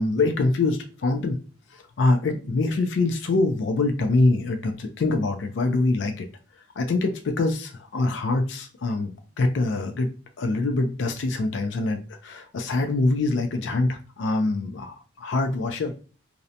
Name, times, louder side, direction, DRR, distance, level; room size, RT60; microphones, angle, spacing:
voice 1, 0.0-1.4 1.7-6.3 6.8-9.1 9.4-10.1 10.4-15.9, left 2 dB, 70° left, 5 dB, 0.4 m, -24 dB
2.5 x 2.1 x 2.6 m, 0.36 s
head